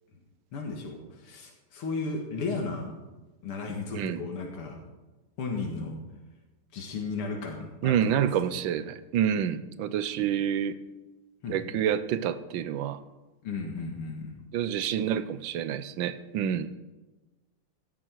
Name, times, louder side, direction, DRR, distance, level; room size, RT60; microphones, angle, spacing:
voice 1, 0.5-2.9 3.4-4.8 5.4-6.0 6.7-8.6 10.2-10.3 11.4-11.6 13.4-14.4 15.0-15.1, left 4 dB, 90° left, 1 dB, 2.7 m, -35 dB
voice 2, 3.9-4.2 7.8-10.8 11.5-13.0 14.5-16.7, right 9 dB, 70° right, 13 dB, 1.3 m, -28 dB
16.5 x 12.0 x 4.6 m, 1.2 s
omnidirectional pair, 2.4 m